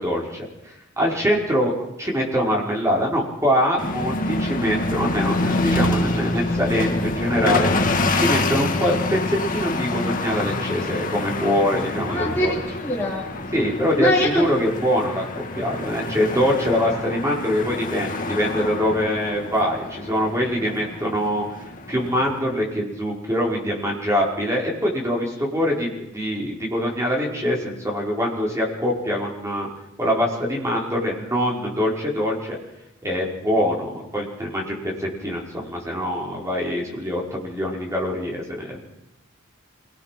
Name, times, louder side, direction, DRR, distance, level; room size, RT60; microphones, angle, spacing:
voice 1, 0.0-1.7 2.0-12.5 13.5-15.2 15.5-21.6 21.9-29.7 30.0-32.5 33.0-38.9, equal, 15° right, -2 dB, 5.2 m, -24 dB
sound 1, 3.8-22.4, left 2 dB, 40° left, 1.9 m, -27 dB
voice 2, 12.1-13.3 14.0-14.5, left 1 dB, 10° left, -7 dB, 4.2 m, -23 dB
26.5 x 19.5 x 6.1 m, 0.91 s
head